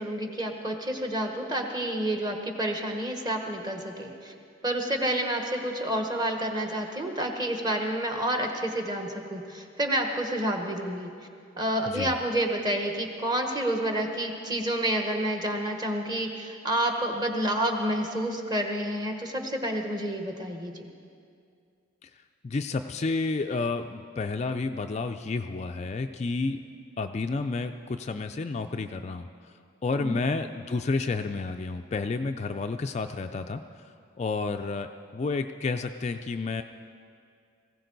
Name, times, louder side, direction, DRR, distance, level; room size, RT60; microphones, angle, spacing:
voice 1, 0.0-4.3 4.6-11.1 11.6-20.9 29.9-30.2, right 1 dB, 20° right, 3 dB, 1.3 m, -29 dB
voice 2, 22.4-26.6 27.0-29.3 29.8-33.6 34.2-36.6, left 3 dB, 35° left, 6 dB, 0.3 m, -30 dB
19.5 x 16.0 x 4.0 m, 2.4 s
head